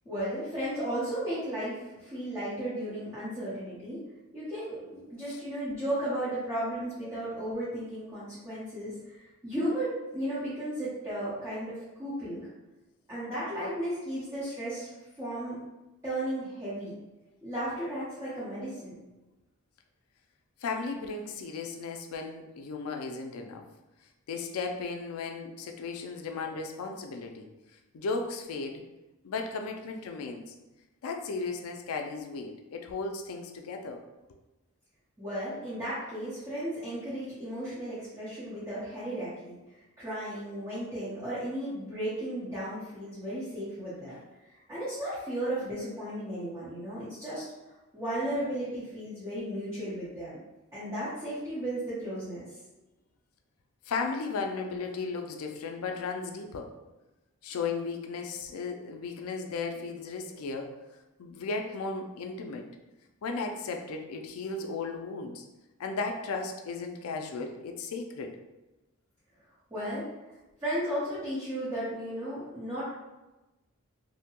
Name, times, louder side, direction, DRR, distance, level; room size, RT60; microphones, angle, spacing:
voice 1, 0.1-4.0 4.3-12.5 13.1-15.6 16.0-16.9 17.4-19.0 35.2-39.6 40.0-44.1 44.7-47.4 47.9-50.3 50.7-52.5 69.7-70.1 70.6-72.9, right 1 dB, 15° right, -12 dB, 0.8 m, -34 dB
voice 2, 20.6-23.6 24.3-27.5 27.9-28.8 29.2-30.5 31.0-34.0 53.9-56.7 57.4-60.7 61.2-62.7 63.2-65.4 65.8-68.4, left 4 dB, 85° left, 4 dB, 0.4 m, -35 dB
2.7 x 2.2 x 2.8 m, 1.0 s
head